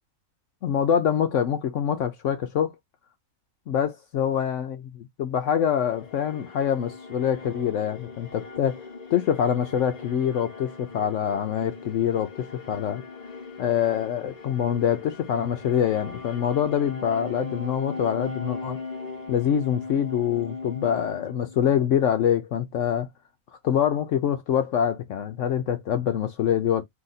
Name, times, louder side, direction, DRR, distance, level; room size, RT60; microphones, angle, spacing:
voice 1, 0.6-2.7 3.7-8.8 9.1-13.0 13.6-18.8 19.3-23.1 23.6-26.8, left 9 dB, 70° left, 0.9 m, -25 dB
sound 1, 5.6-21.9, left 4 dB, 30° left, 1.1 m, -39 dB
3.9 x 2.8 x 3.9 m
omnidirectional pair, 1.4 m